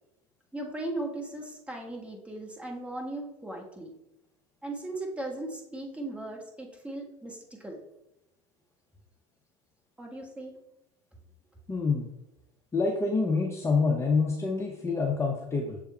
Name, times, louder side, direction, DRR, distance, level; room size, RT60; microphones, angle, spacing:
voice 1, 0.5-3.9 4.6-7.8 10.0-10.6, right 2 dB, 5° right, 0 dB, 1.5 m, -37 dB
voice 2, 11.7-12.1 12.7-15.8, left 4 dB, 15° left, 1 dB, 0.8 m, -27 dB
6.8 x 3.6 x 4.3 m, 0.92 s
hypercardioid pair, 80°, 18 cm